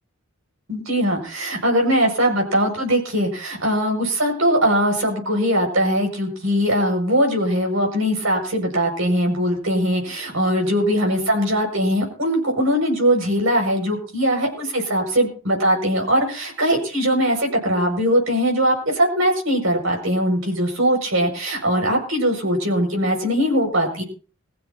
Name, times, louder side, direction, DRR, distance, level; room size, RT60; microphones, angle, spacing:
voice 1, 0.7-24.0, equal, 70° right, 2 dB, 6.9 m, -21 dB
22.0 x 15.5 x 3.0 m, 0.40 s
head